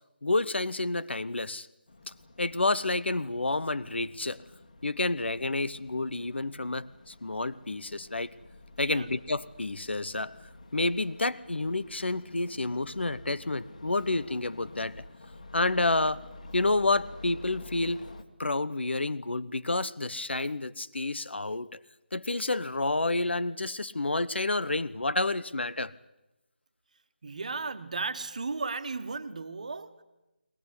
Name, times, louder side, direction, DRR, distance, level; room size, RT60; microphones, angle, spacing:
voice 1, 0.2-1.7 2.1-4.4 4.8-8.3 8.8-10.4 10.7-15.0 15.5-16.2 16.5-18.0 18.4-21.8 22.1-25.9, left 2 dB, 80° left, 19 dB, 1.1 m, -29 dB
sound 1, 1.9-18.2, left 2 dB, 45° left, 2.0 m, -49 dB
voice 2, 27.2-30.0, right 4 dB, 40° right, 10 dB, 1.4 m, -35 dB
21.5 x 19.5 x 9.8 m, 0.95 s
figure-of-eight pair, 175°, 6 cm